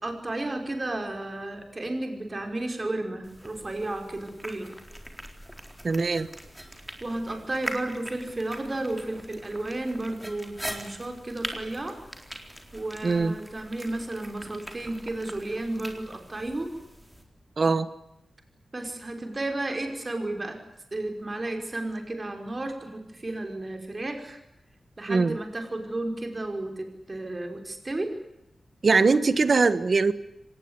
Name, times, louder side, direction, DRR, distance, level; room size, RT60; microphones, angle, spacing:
voice 1, 0.0-4.7 7.0-12.0 12.7-16.7 18.7-20.6 20.9-24.4 25.0-28.2, right 2 dB, 30° right, 5 dB, 5.4 m, -33 dB
sound 1, 3.2-17.2, equal, 5° right, 4.0 m, -42 dB
voice 2, 5.8-6.3 13.0-13.3 17.6-17.9 25.1-25.4 28.8-30.1, right 4 dB, 45° right, 13 dB, 1.4 m, -21 dB
25.0 x 19.5 x 9.7 m, 0.86 s
wide cardioid pair, 115°, 0 cm